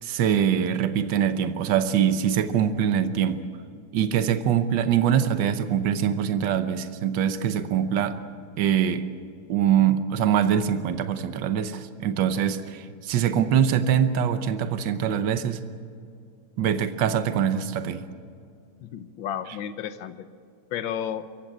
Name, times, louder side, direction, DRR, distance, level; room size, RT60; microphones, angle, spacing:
voice 1, 0.0-3.4 3.9-8.2 8.6-9.1 9.5-15.6 16.6-18.0, right 9 dB, 70° right, 10 dB, 1.6 m, -23 dB
voice 2, 18.8-20.3 20.7-21.3, left 9 dB, 70° left, 12 dB, 1.7 m, -32 dB
25.0 x 14.5 x 8.9 m, 2.3 s
omnidirectional pair, 2.2 m